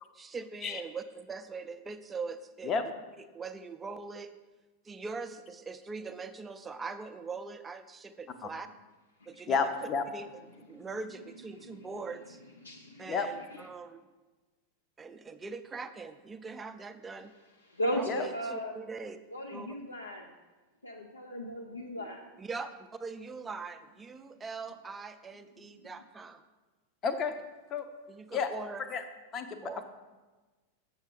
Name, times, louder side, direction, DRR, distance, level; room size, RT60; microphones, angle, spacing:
voice 1, 0.1-2.8 3.2-4.3 4.8-8.7 9.3-9.6 10.1-10.3 10.6-12.4 13.0-14.1 15.0-17.3 17.9-19.2 19.5-19.7 22.4-26.4 28.1-28.9 29.6-29.8, right 4 dB, 15° right, 9 dB, 0.5 m, -42 dB
voice 2, 9.5-10.0 13.1-13.3 18.1-18.2 27.0-27.3 27.7-27.9 28.3-28.5 28.9-29.0 29.3-29.7, left 5 dB, 30° left, 8 dB, 0.6 m, -30 dB
voice 3, 12.6-13.2 13.5-13.7 17.7-18.8 19.3-20.3 20.8-22.2, equal, 80° left, 1 dB, 0.5 m, -36 dB
7.2 x 6.9 x 3.7 m, 1.2 s
figure-of-eight pair, 90°, 0 cm